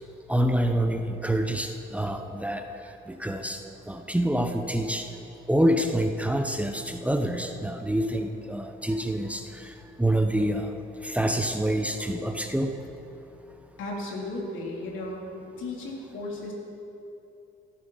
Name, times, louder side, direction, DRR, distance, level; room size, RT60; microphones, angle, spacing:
voice 1, 0.3-2.6 3.1-3.6 3.9-5.1 5.5-9.7 10.0-10.7 11.0-12.8, right 1 dB, 5° right, 5 dB, 0.9 m, -26 dB
voice 2, 13.8-15.2 15.6-16.5, left 2 dB, 80° left, -2 dB, 3.5 m, -35 dB
15.0 x 13.0 x 5.7 m, 2.8 s
cardioid pair, 90°, 20 cm